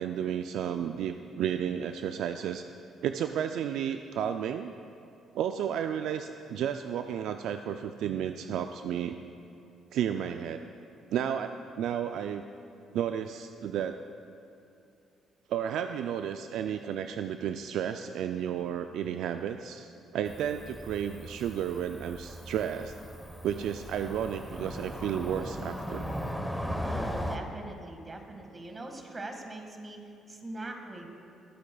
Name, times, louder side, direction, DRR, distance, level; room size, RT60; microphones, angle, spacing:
voice 1, 0.0-2.7 3.0-4.7 5.3-9.2 9.9-10.7 11.1-12.4 12.9-14.0 15.5-22.9 23.4-26.1, right 9 dB, 75° right, 8 dB, 0.3 m, -32 dB
Cricket / Motor vehicle (road), 20.3-27.4, equal, ahead, 1.0 m, -38 dB
voice 2, 26.8-31.1, right 2 dB, 30° right, 3 dB, 1.7 m, -42 dB
22.0 x 8.6 x 2.3 m, 2.6 s
supercardioid pair, 70°, 0 cm